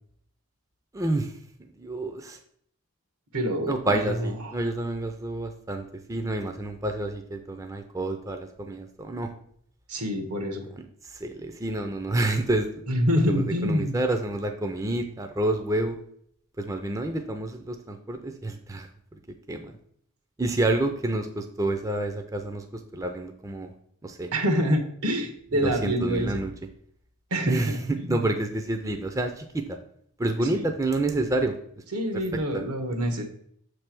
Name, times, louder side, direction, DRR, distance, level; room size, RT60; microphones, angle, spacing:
voice 1, 0.9-1.3 1.8-2.4 3.7-9.3 10.8-12.8 13.3-16.0 16.6-18.9 19.5-19.8 20.4-23.7 24.0-24.3 25.6-26.5 27.5-29.8 30.2-31.5 32.1-32.6 32.9-33.0, right 2 dB, 15° right, 5 dB, 0.4 m, -29 dB
voice 2, 3.3-4.5 9.9-10.7 12.9-14.0 24.3-26.4 27.3-28.3 30.5-30.7 31.9-33.2, equal, 85° right, 4 dB, 1.2 m, -26 dB
6.7 x 3.3 x 5.9 m, 0.66 s
head